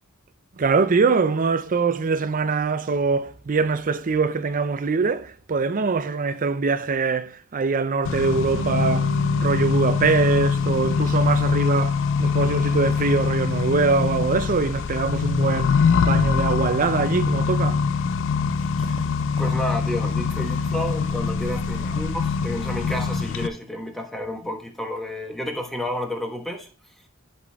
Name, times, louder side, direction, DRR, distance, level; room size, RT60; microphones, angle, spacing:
voice 1, 0.6-9.1 9.4-17.8, right 4 dB, 40° right, 0.5 m, -23 dB
Accelerating revving vroom, 8.0-23.5, left 5 dB, 60° left, 0.4 m, -23 dB
Bass guitar, 8.5-12.8, right 8 dB, 80° right, 0.8 m, -38 dB
voice 2, 19.4-26.7, left 1 dB, ahead, 1.2 m, -31 dB
10.5 x 4.3 x 3.5 m
head